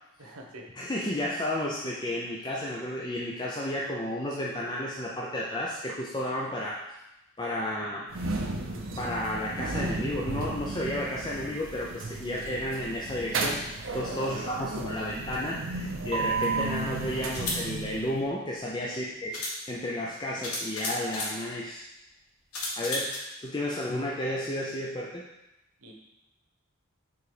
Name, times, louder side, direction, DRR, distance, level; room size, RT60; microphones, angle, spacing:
voice 1, 0.2-0.7 14.3-14.4 18.9-19.1 25.8-25.9, right 1 dB, 85° right, 1 dB, 1.1 m, -45 dB
voice 2, 0.8-6.8 7.4-8.1 9.0-13.6 13.9-19.4 19.7-21.9 22.8-23.1 23.4-25.3, left 1 dB, 20° left, -4 dB, 0.5 m, -32 dB
sound 1, 8.1-18.3, right 3 dB, 60° right, 0.7 m, -34 dB
sound 2, 16.2-16.3 17.2-17.6 18.8-18.9 19.3-19.6 20.4-21.4 22.5-23.2, left 2 dB, 85° left, 1.4 m, -33 dB
4.8 x 4.0 x 4.9 m, 0.92 s
head